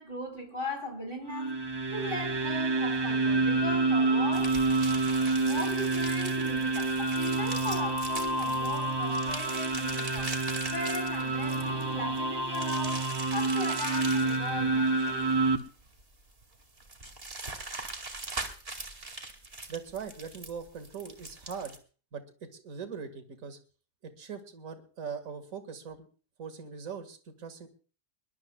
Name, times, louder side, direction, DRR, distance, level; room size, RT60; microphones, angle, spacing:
voice 1, 0.0-1.6 1.9-4.7 5.4-13.0 13.3-15.3, left 1 dB, 30° left, 4.6 m, -38 dB
sound 1, 1.2-15.6, right 3 dB, 20° right, 1.0 m, -28 dB
sound 2, 4.3-21.8, right 2 dB, 35° right, 2.4 m, -41 dB
voice 2, 19.7-21.8 22.1-23.6 24.0-26.1 26.4-27.7, right 6 dB, 55° right, 2.2 m, -41 dB
22.0 x 21.5 x 2.3 m
omnidirectional pair, 1.7 m